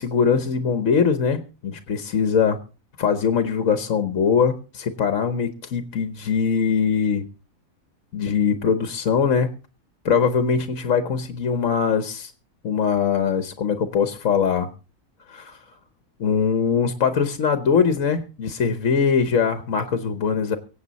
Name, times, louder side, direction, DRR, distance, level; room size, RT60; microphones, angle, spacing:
voice 1, 0.0-2.6 3.0-7.3 8.1-9.6 10.0-12.3 12.6-14.7 15.3-15.6 16.2-20.6, left 6 dB, 70° left, 9 dB, 1.4 m, -22 dB
24.0 x 8.3 x 4.1 m, 0.33 s
omnidirectional pair, 1.4 m